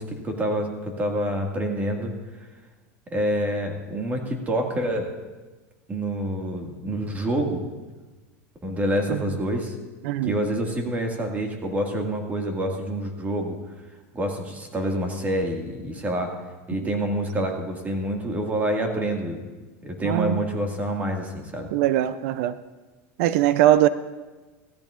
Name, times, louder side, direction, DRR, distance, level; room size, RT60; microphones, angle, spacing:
voice 1, 0.0-2.1 3.1-5.1 5.9-7.7 8.6-9.7 10.2-13.6 14.1-16.3 16.7-19.4 19.8-21.7, right 1 dB, 20° right, 2 dB, 2.0 m, -27 dB
voice 2, 10.0-10.4 20.0-20.4 21.7-22.6 23.2-23.9, right 13 dB, 65° right, 14 dB, 0.5 m, -21 dB
17.0 x 14.0 x 2.5 m, 1.2 s
supercardioid pair, 130°, 8 cm